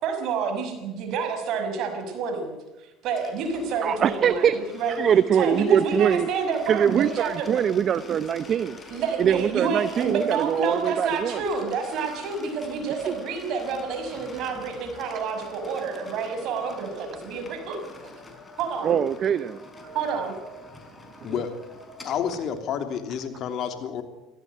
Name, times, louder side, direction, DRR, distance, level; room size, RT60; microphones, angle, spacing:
voice 1, 0.0-5.0 5.4-7.6 8.9-18.1 18.6-19.0 19.8-20.3, right 5 dB, 60° right, 5 dB, 6.1 m, -29 dB
sound 1, 3.2-22.6, left 3 dB, 20° left, 4.8 m, -46 dB
voice 2, 3.8-4.6 4.9-6.3 6.7-8.8 9.2-11.4 13.1-13.2 18.8-19.6 21.2-21.3, right 8 dB, 45° right, 15 dB, 0.8 m, -23 dB
voice 3, 22.0-24.0, left 8 dB, 55° left, 7 dB, 2.9 m, -29 dB
17.5 x 16.0 x 9.7 m, 1.0 s
supercardioid pair, 90°, 0 cm